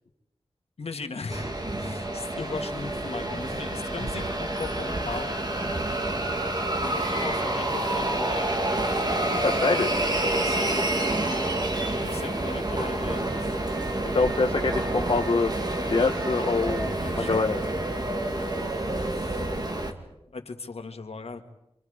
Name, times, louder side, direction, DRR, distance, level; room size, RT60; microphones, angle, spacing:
voice 1, 0.8-5.4 6.8-8.5 9.1-9.6 10.4-10.8 12.0-13.6 16.9-17.4 19.2-19.5 20.3-21.5, left 4 dB, 85° left, 6 dB, 1.8 m, -38 dB
sound 1, 1.3-19.9, right 1 dB, 40° right, 2.1 m, -28 dB
Screaming, 6.9-7.7 10.2-11.5, right 2 dB, 90° right, 7.9 m, -37 dB
voice 2, 9.4-9.9 14.0-15.5 15.9-17.6, left 3 dB, 55° left, 3 dB, 1.2 m, -25 dB
27.0 x 26.5 x 5.0 m, 0.87 s
wide cardioid pair, 80°, 10 cm